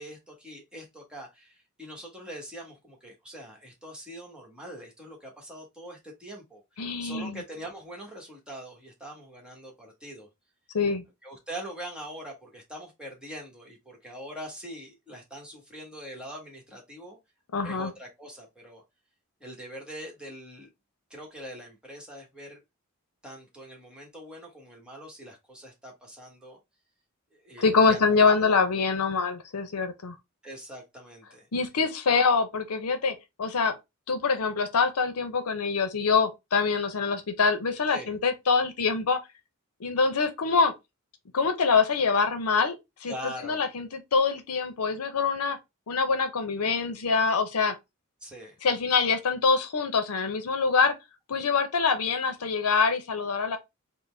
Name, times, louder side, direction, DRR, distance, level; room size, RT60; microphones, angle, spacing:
voice 1, 0.0-6.6 7.0-10.3 11.2-17.2 17.6-18.8 19.4-20.7 21.1-22.6 23.2-26.6 27.4-28.0 28.3-28.6 30.4-31.5 37.9-38.1 43.0-43.6 48.2-48.6, equal, 5° right, 1.1 m, -43 dB
voice 2, 6.8-7.4 10.7-11.0 17.5-17.9 27.6-30.2 31.5-33.7 34.1-39.2 39.8-40.7 41.3-42.8 43.0-43.1 43.4-45.6 45.9-47.7 48.6-50.9 51.3-53.6, left 5 dB, 85° left, 0.7 m, -25 dB
3.8 x 2.1 x 3.2 m
head